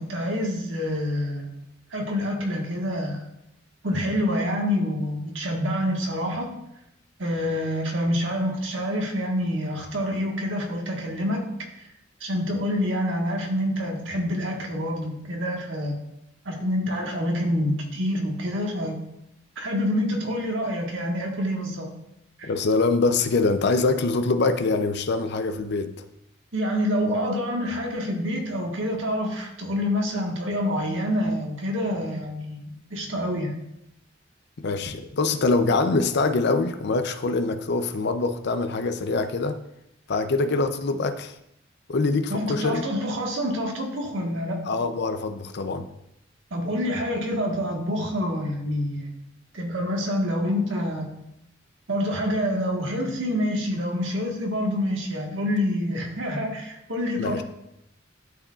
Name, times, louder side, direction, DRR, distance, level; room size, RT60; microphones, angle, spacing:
voice 1, 0.0-1.5 1.9-3.2 3.8-6.5 7.2-11.4 11.7-11.9 12.2-16.0 16.4-19.0 19.6-21.9 22.4-22.5 26.5-33.5 42.3-44.6 46.5-49.1 49.5-51.1 51.9-57.4, equal, 75° right, 0 dB, 1.5 m, -27 dB
voice 2, 22.4-25.9 34.6-39.6 40.1-41.3 41.9-42.9 44.7-45.9 57.2-57.4, left 3 dB, 60° left, 9 dB, 0.5 m, -24 dB
11.5 x 4.9 x 2.4 m, 0.83 s
head